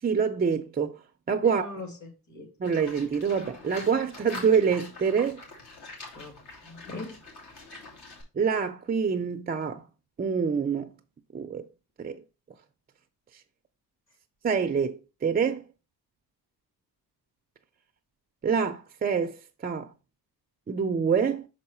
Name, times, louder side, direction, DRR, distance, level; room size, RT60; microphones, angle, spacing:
voice 1, 0.0-1.0 1.3-1.7 2.6-5.4 8.3-9.8 10.2-10.9 11.3-11.7 12.0-12.2 14.4-15.6 18.4-19.9 20.7-21.5, right 6 dB, 25° right, 0.4 m, -26 dB
voice 2, 1.4-2.5 6.1-7.2, left 2 dB, 45° left, 2.5 m, -41 dB
Livestock farm animals working animals, 2.6-8.2, left 2 dB, 70° left, 2.9 m, -45 dB
6.1 x 4.6 x 4.2 m
cardioid pair, 120°, 40 cm